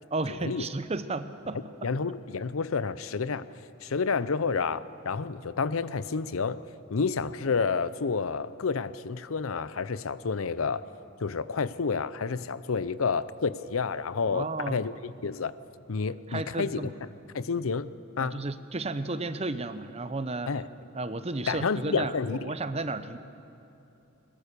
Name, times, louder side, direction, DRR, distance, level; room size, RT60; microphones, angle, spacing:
voice 1, 0.1-1.9 14.3-14.8 16.3-16.9 18.2-20.6 20.9-23.2, right 2 dB, 30° right, 12 dB, 0.8 m, -33 dB
voice 2, 1.8-3.5 3.8-6.6 6.9-10.9 11.2-15.6 15.9-16.9 17.3-18.4 20.5-20.7 21.5-22.5, left 5 dB, 80° left, 16 dB, 0.6 m, -30 dB
21.5 x 21.0 x 6.8 m, 2.8 s
head